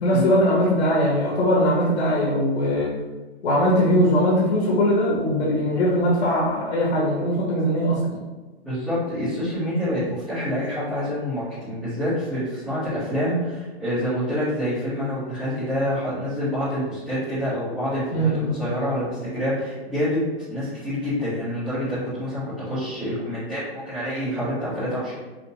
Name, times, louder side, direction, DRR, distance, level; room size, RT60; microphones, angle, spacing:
voice 1, 0.0-2.9 3.4-8.2 18.1-18.6, equal, 80° left, -5 dB, 1.4 m, -20 dB
voice 2, 8.6-20.2 20.5-25.2, equal, ahead, -32 dB, 0.3 m, -27 dB
5.7 x 2.1 x 3.1 m, 1.2 s
hypercardioid pair, 165°, 33 cm